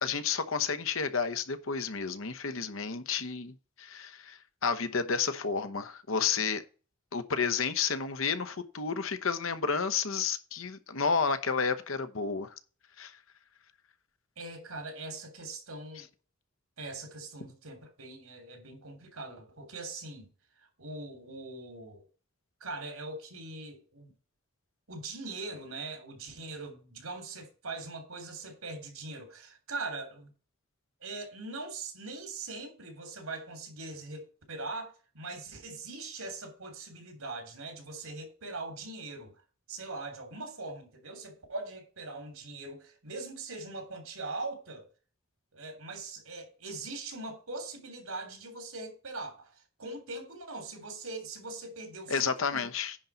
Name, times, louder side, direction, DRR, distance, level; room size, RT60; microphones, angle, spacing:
voice 1, 0.0-6.6 7.1-12.5 13.0-13.1 52.1-53.0, left 5 dB, 70° left, 1.0 m, -31 dB
voice 2, 14.4-16.1 16.8-20.3 20.8-22.0 22.6-24.1 24.9-30.3 31.0-39.3 39.7-44.9 45.5-49.5 49.8-52.7, right 3 dB, 85° right, 3.2 m, -41 dB
10.0 x 4.0 x 7.0 m
head